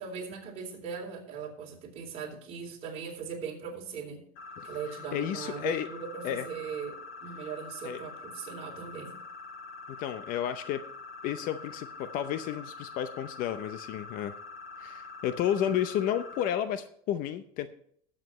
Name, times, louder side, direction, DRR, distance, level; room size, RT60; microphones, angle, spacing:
voice 1, 0.0-4.2 4.6-9.1, right 6 dB, 35° right, -2 dB, 3.8 m, -39 dB
sound 1, 4.4-16.5, left 3 dB, 70° left, 3.0 m, -45 dB
voice 2, 5.1-5.9 6.2-6.4 7.8-8.0 9.9-10.8 11.2-14.3 14.8-17.7, left 10 dB, 50° left, 11 dB, 0.7 m, -32 dB
19.0 x 7.5 x 3.1 m, 0.64 s
supercardioid pair, 145°, 18 cm